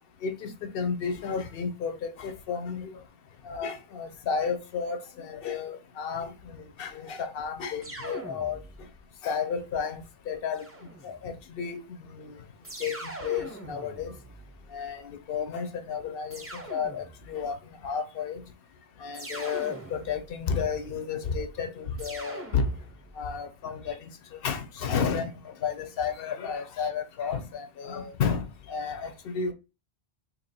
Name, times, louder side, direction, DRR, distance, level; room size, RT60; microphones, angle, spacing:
voice 1, 0.2-3.0 3.4-8.6 9.2-10.7 11.0-12.4 12.8-14.1 14.7-18.4 19.0-22.7 23.2-29.5, left 6 dB, 65° left, 0.8 m, -32 dB
sound 1, 7.8-9.0 10.5-11.4 12.6-15.0 16.3-17.4 19.1-20.5 22.0-23.2, right 1 dB, 15° right, 0.7 m, -42 dB
2.8 x 2.8 x 4.1 m
omnidirectional pair, 1.1 m